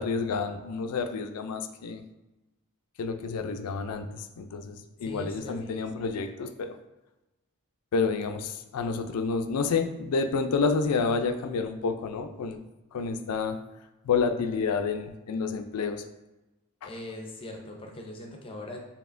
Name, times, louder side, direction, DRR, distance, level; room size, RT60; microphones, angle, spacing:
voice 1, 0.0-2.0 3.0-6.8 7.9-12.6 12.9-13.6 14.0-16.0 16.8-16.9, left 4 dB, 90° left, 8 dB, 0.4 m, -29 dB
voice 2, 5.0-5.8 16.8-18.8, left 1 dB, 25° left, 1 dB, 0.5 m, -41 dB
6.9 x 2.8 x 2.5 m, 1.0 s
head